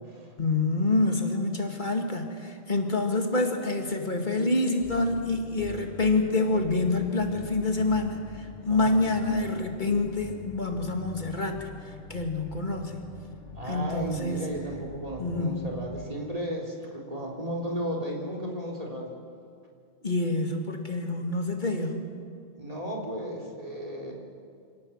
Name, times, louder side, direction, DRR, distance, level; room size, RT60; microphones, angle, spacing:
voice 1, 0.4-13.0 13.7-14.4 15.2-15.7 20.0-22.1, left 2 dB, 50° left, 3 dB, 2.2 m, -27 dB
sound 1, 4.8-16.1, left 5 dB, 80° left, 1.6 m, -45 dB
voice 2, 8.6-9.0 13.6-19.1 22.6-24.1, right 1 dB, 35° right, -2 dB, 3.5 m, -34 dB
25.5 x 17.5 x 7.3 m, 2.2 s
omnidirectional pair, 1.0 m